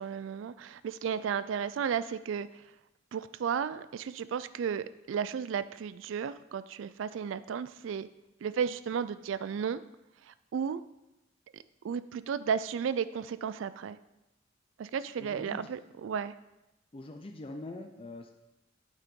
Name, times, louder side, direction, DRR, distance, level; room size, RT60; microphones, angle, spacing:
voice 1, 0.0-2.6 3.1-8.1 8.4-9.8 10.3-10.8 11.8-14.0 14.8-16.3, right 7 dB, 80° right, 15 dB, 0.3 m, -34 dB
voice 2, 15.2-15.7 16.9-18.3, left 2 dB, 30° left, 4 dB, 0.5 m, -43 dB
8.8 x 8.3 x 3.7 m, 0.93 s
head